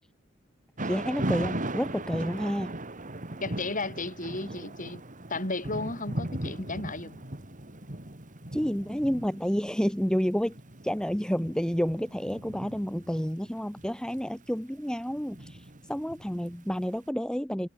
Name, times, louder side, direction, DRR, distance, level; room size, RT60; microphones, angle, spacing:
voice 1, 0.8-2.7 8.5-10.5 10.8-17.7, equal, 5° left, 1.3 m, -30 dB
Thunder / Rain, 0.8-16.8, right 1 dB, 40° right, 3.2 m, -38 dB
voice 2, 3.4-5.0 5.3-7.3, left 2 dB, 40° left, 6.6 m, -34 dB
head